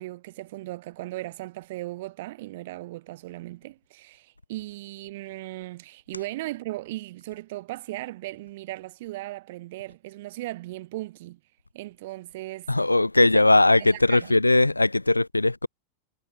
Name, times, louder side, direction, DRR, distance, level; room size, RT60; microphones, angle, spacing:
voice 1, 0.0-11.4 11.7-12.9 13.2-14.4, right 18 dB, 55° right, 5.3 m, -37 dB
voice 2, 12.7-15.7, left 2 dB, 85° left, 1.9 m, -19 dB
figure-of-eight pair, 90°, 0 cm